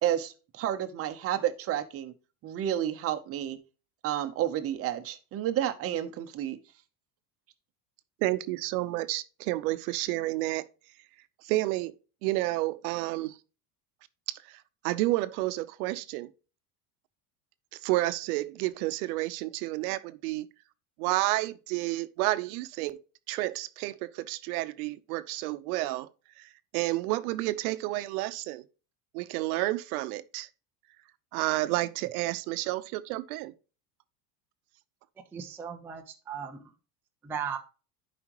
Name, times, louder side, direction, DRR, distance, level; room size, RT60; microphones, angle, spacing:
voice 1, 0.0-2.1 2.4-3.6 4.0-6.6, right 11 dB, 30° right, 0.8 m, -30 dB
voice 2, 8.2-10.6 11.4-11.9 12.2-13.4 14.3-16.3 17.7-20.5 21.0-23.0 23.3-26.1 26.4-28.6 29.1-30.5 31.3-33.5, right 18 dB, 75° right, 0.8 m, -30 dB
voice 3, 35.3-36.7 37.2-37.6, right 7 dB, 5° right, 0.4 m, -37 dB
11.0 x 5.1 x 3.0 m
cardioid pair, 150°, 45 cm